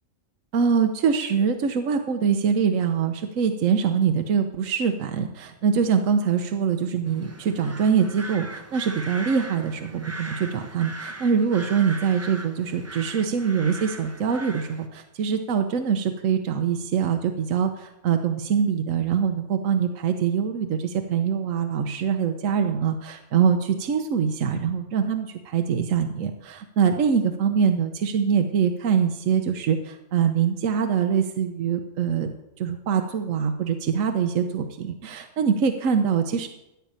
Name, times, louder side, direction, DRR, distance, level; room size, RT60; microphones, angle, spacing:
voice 1, 0.5-36.5, right 7 dB, 80° right, 6 dB, 1.2 m, -24 dB
sound 1, 7.1-14.9, right 2 dB, 15° right, 0.7 m, -39 dB
15.0 x 5.8 x 8.8 m, 0.92 s
omnidirectional pair, 1.3 m